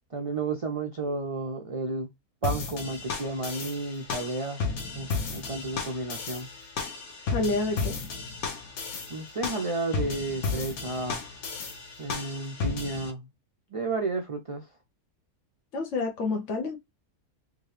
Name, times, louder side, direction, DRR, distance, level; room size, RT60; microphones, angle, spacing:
voice 1, 0.1-2.1 2.4-4.6 4.9-6.5 9.1-11.2 12.0-13.3 13.7-14.7, right 3 dB, 50° right, 0.4 m, -32 dB
sound 1, 2.4-13.1, left 4 dB, 80° left, 1.4 m, -34 dB
voice 2, 7.3-8.0 15.7-16.8, left 3 dB, 60° left, 1.2 m, -28 dB
3.7 x 2.8 x 3.2 m
omnidirectional pair, 1.5 m